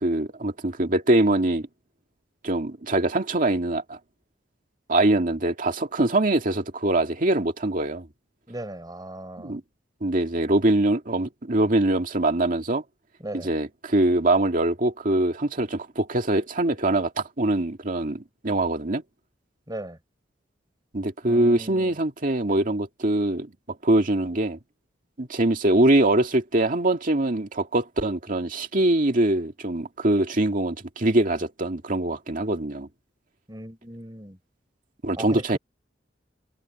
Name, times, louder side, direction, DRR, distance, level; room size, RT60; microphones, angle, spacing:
voice 1, 0.0-1.7 2.4-4.0 4.9-8.1 9.4-9.6 10.0-12.8 13.4-19.0 20.9-24.6 25.2-32.9 35.0-35.6, right 1 dB, 45° right, 2.2 m, -23 dB
voice 2, 8.5-9.6 13.2-13.5 19.7-20.0 21.3-22.0 33.5-34.4 35.2-35.6, right 1 dB, 20° right, 4.3 m, -37 dB
head